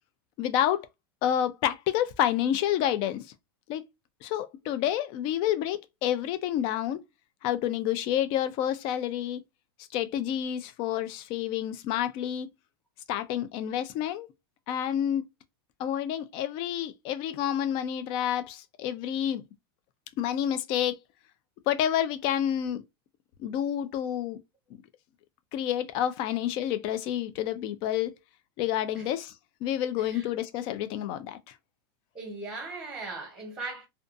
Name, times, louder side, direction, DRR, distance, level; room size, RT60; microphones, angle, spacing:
voice 1, 0.4-0.9 1.2-3.2 3.7-3.8 4.2-7.0 7.4-9.4 9.9-12.5 13.1-14.3 14.7-15.2 15.8-19.4 20.2-21.0 21.7-22.8 23.4-24.4 24.7-24.8 25.5-28.1 28.6-29.3 29.6-31.4, left 11 dB, 40° left, 0.4 m, -29 dB
voice 2, 32.1-33.9, right 3 dB, 5° right, 1.0 m, -38 dB
2.5 x 2.3 x 2.5 m
supercardioid pair, 155°, 13 cm